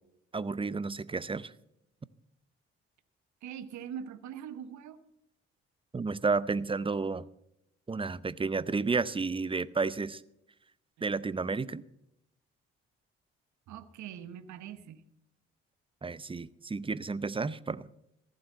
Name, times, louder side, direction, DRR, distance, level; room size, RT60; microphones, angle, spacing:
voice 1, 0.3-1.5 5.9-7.2 7.9-10.2 11.0-11.8 16.0-17.9, right 4 dB, 15° right, 19 dB, 0.6 m, -31 dB
voice 2, 3.4-5.0 11.0-11.1 13.7-15.0, right 9 dB, 60° right, 13 dB, 1.0 m, -42 dB
15.0 x 7.9 x 7.2 m, 0.78 s
hypercardioid pair, 45°, 32 cm